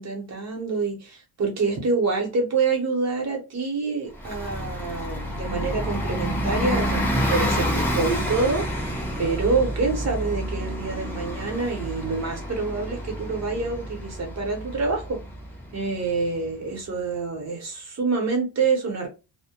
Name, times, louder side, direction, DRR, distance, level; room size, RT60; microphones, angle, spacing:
voice 1, 0.0-15.2 15.7-19.1, right 4 dB, 35° right, 0.8 m, -27 dB
Bus, 4.1-16.4, equal, 5° left, 0.4 m, -29 dB
2.2 x 2.0 x 2.8 m
cardioid pair, 160°, 46 cm